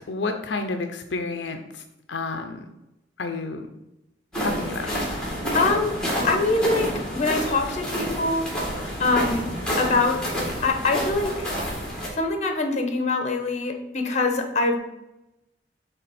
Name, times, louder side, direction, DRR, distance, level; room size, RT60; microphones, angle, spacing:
voice 1, 0.1-1.8 2.1-2.6 3.2-3.7 4.4-4.9, left 3 dB, 75° left, 6 dB, 0.6 m, -30 dB
sound 1, 4.3-12.1, equal, 5° left, 2.1 m, -29 dB
voice 2, 5.5-6.0 6.2-8.6 9.0-9.5 9.8-11.5 12.1-14.8, left 3 dB, 40° left, 5 dB, 1.0 m, -24 dB
8.3 x 3.4 x 4.2 m, 0.93 s
head